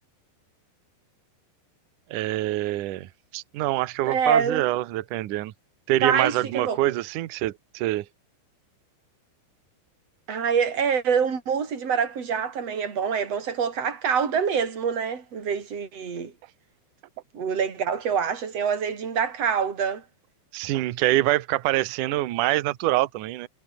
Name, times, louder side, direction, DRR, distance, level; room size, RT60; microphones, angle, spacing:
voice 1, 2.1-5.5 5.9-8.1 20.5-23.5, right 16 dB, 80° right, 1.8 m, -25 dB
voice 2, 4.1-4.7 6.0-6.8 10.3-16.3 17.3-20.0, right 7 dB, 35° right, 4.9 m, -25 dB
omnidirectional pair, 5.3 m